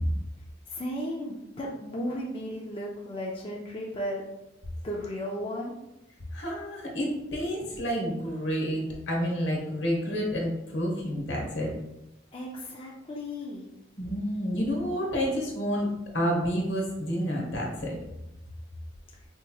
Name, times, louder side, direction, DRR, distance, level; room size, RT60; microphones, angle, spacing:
voice 1, 0.7-4.2 4.8-5.8 12.3-13.6, equal, 30° left, -3 dB, 0.4 m, -35 dB
voice 2, 6.3-11.7 14.0-18.0, equal, 75° left, -1 dB, 1.1 m, -29 dB
4.6 x 2.9 x 2.3 m, 0.89 s
head